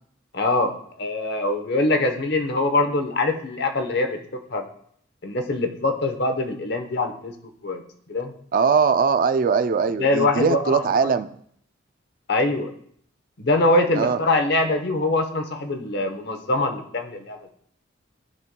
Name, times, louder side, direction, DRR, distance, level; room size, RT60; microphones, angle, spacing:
voice 1, 0.3-0.7 1.0-4.2 4.5-4.7 5.2-7.3 7.6-7.8 8.1-8.3 10.0-11.1 12.3-12.7 13.4-17.4, left 2 dB, 60° left, 6 dB, 0.9 m, -23 dB
voice 2, 8.5-11.3 13.9-14.2, right 5 dB, 45° right, 12 dB, 0.3 m, -20 dB
13.0 x 5.3 x 2.2 m, 0.64 s
head